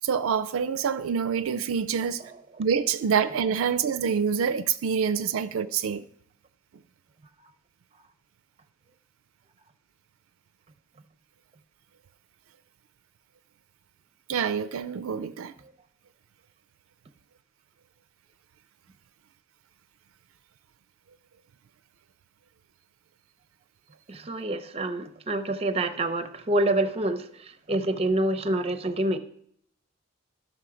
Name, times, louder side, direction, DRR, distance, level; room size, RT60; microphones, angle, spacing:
voice 1, 0.0-2.2 2.6-6.0 14.3-15.5, right 6 dB, 70° right, 0.4 m, -26 dB
voice 2, 24.1-27.3 27.7-29.2, right 1 dB, 30° right, 0.6 m, -26 dB
12.5 x 6.2 x 4.9 m
head